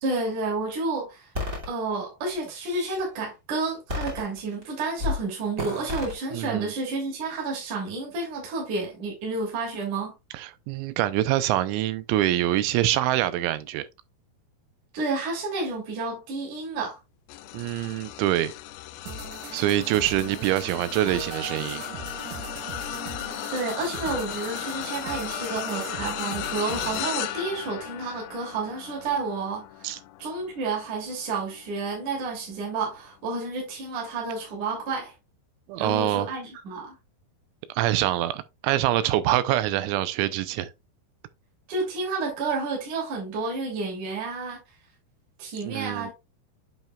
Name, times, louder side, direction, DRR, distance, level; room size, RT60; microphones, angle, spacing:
voice 1, 0.0-1.3 1.7-10.1 14.9-17.0 23.5-29.9 30.2-35.1 35.8-37.0 41.7-44.6 45.4-46.1, right 3 dB, 45° right, 3.9 m, -30 dB
sound 1, 1.3-1.7 2.4-3.0 3.9-4.6 5.0-5.2 5.6-6.1, left 2 dB, 30° right, 1.7 m, -31 dB
voice 2, 6.3-6.7 10.3-13.9 17.5-18.5 19.5-21.8 29.8-30.0 35.7-36.3 37.7-40.7 45.7-46.1, right 13 dB, 85° right, 3.0 m, -25 dB
sound 2, 17.3-32.8 33.3-33.6 34.8-34.9, left 15 dB, 90° left, 2.5 m, -36 dB
sound 3, 19.1-27.1, right 4 dB, 60° right, 2.0 m, -39 dB
8.8 x 5.8 x 2.4 m
omnidirectional pair, 5.5 m